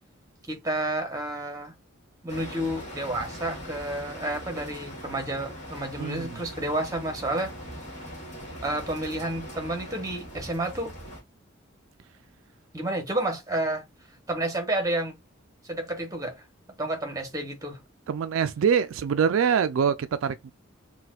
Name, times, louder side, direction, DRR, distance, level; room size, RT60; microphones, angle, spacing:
voice 1, 0.5-1.7 2.2-7.5 8.6-10.9 12.7-13.9 14.3-15.2 15.6-16.4 16.8-17.8, right 1 dB, 15° right, 0.9 m, -30 dB
sound 1, 2.3-11.2, equal, 35° left, 1.9 m, -41 dB
voice 2, 6.0-6.4 18.1-20.5, right 7 dB, 80° right, 0.3 m, -24 dB
4.1 x 2.2 x 2.3 m
head